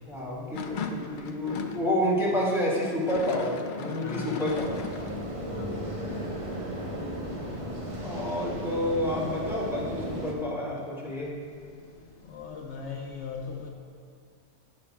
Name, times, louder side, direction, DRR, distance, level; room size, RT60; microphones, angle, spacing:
voice 1, 0.1-4.8 8.0-11.3, left 1 dB, ahead, 1.9 m, -29 dB
sound 1, 0.5-1.9 3.0-5.2, left 4 dB, 55° left, 0.6 m, -37 dB
voice 2, 4.0-4.3 5.5-5.9 12.3-13.7, left 5 dB, 70° left, 1.0 m, -38 dB
sound 2, 4.5-10.3, equal, 30° right, 0.9 m, -35 dB
16.5 x 6.3 x 2.3 m
omnidirectional pair, 1.2 m